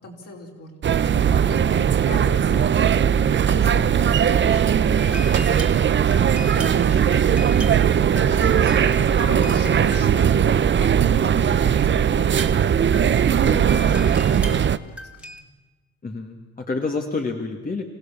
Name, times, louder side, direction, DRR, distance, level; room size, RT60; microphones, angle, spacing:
voice 1, 0.0-5.8 6.1-8.8 9.1-15.4, left 2 dB, 55° left, 0 dB, 4.7 m, -40 dB
sound 1, 0.8-14.8, right 8 dB, 40° right, 0.6 m, -19 dB
sound 2, 5.0-11.3 12.2-15.4, equal, 5° right, 2.2 m, -38 dB
voice 2, 16.0-17.8, left 3 dB, 30° left, 2 dB, 1.8 m, -28 dB
26.0 x 16.0 x 7.3 m, 1.2 s
cardioid pair, 90°, 30 cm